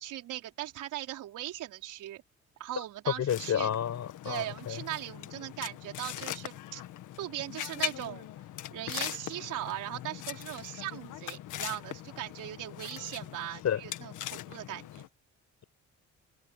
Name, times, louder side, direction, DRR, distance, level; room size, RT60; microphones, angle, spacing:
voice 1, 0.0-2.2 2.6-3.7 4.2-6.8 7.2-8.3 8.7-14.9, right 14 dB, 85° right, 4.9 m, -39 dB
voice 2, 3.2-4.8 13.6-13.8, left 9 dB, 60° left, 5.1 m, -30 dB
sound 1, 3.3-15.1, left 13 dB, 85° left, 1.8 m, -41 dB
cardioid pair, 90°, 30 cm